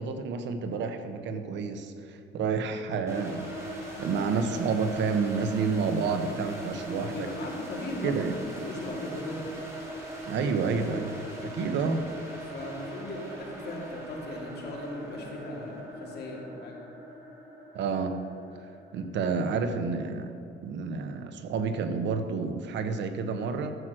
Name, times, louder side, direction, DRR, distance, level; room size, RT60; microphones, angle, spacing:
voice 1, 0.0-3.5 4.0-7.3 8.0-8.4 10.3-12.0 17.7-18.2 18.9-20.3 20.6-23.8, right 5 dB, 75° right, 7 dB, 1.0 m, -29 dB
sound 1, 3.1-19.9, equal, 15° right, 2.9 m, -40 dB
voice 2, 7.0-9.5 12.5-16.8, left 1 dB, 60° left, -1 dB, 2.6 m, -38 dB
12.5 x 7.5 x 6.3 m, 2.5 s
cardioid pair, 135°, 19 cm